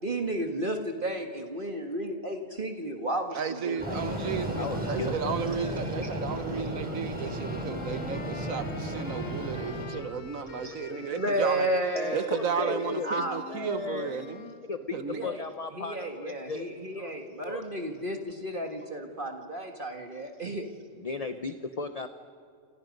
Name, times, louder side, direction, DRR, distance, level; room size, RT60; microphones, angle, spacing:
voice 1, 0.0-3.4 3.7-4.0 6.5-6.6 10.9-12.3 12.6-13.4 15.1-15.4 15.7-20.7, right 1 dB, 40° right, 1.8 m, -32 dB
voice 2, 3.4-11.7 12.1-14.5 14.9-15.3, right 7 dB, 85° right, 1.6 m, -34 dB
Train, 3.8-9.9, right 1 dB, 5° right, 5.2 m, -34 dB
voice 3, 4.5-6.1 6.5-7.0 10.6-10.8 11.9-13.1 13.5-14.1 14.7-17.7 21.0-22.1, left 4 dB, 35° left, 0.8 m, -37 dB
sound 1, 7.2-14.7, left 5 dB, 75° left, 1.7 m, -44 dB
29.0 x 27.5 x 5.3 m
omnidirectional pair, 1.4 m